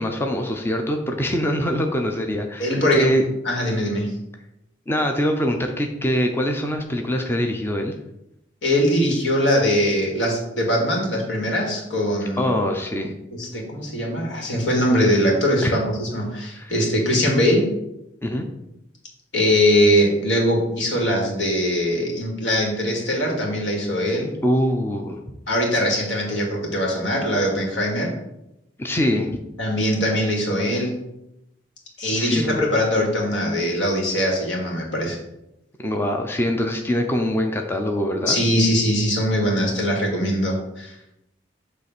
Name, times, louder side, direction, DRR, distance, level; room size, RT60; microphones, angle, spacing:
voice 1, 0.0-3.2 4.9-7.9 12.4-13.1 15.6-15.8 16.5-16.7 18.2-18.5 24.4-25.4 28.8-29.3 32.1-32.7 35.8-38.4, equal, 10° left, 3 dB, 0.6 m, -23 dB
voice 2, 2.6-3.2 3.4-4.1 8.6-12.5 13.3-17.7 19.3-24.3 25.5-28.2 29.6-31.0 32.0-35.2 38.3-40.9, equal, 85° left, -1 dB, 2.2 m, -21 dB
8.1 x 3.2 x 6.0 m, 0.86 s
head